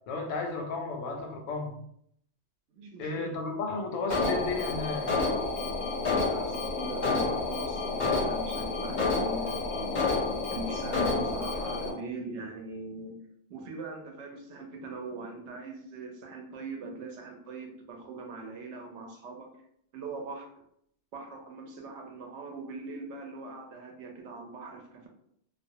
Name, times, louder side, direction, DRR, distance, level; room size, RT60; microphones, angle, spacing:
voice 1, 0.1-1.7 3.0-5.1, left 3 dB, 85° left, 2 dB, 0.9 m, -33 dB
voice 2, 2.7-3.3 6.1-10.0 10.5-13.2 13.5-19.5 19.9-20.5 21.1-25.1, right 3 dB, 70° right, 2 dB, 0.8 m, -41 dB
Alarm, 4.1-11.9, left 3 dB, 50° left, 0.6 m, -29 dB
2.3 x 2.0 x 2.6 m, 0.70 s
omnidirectional pair, 1.3 m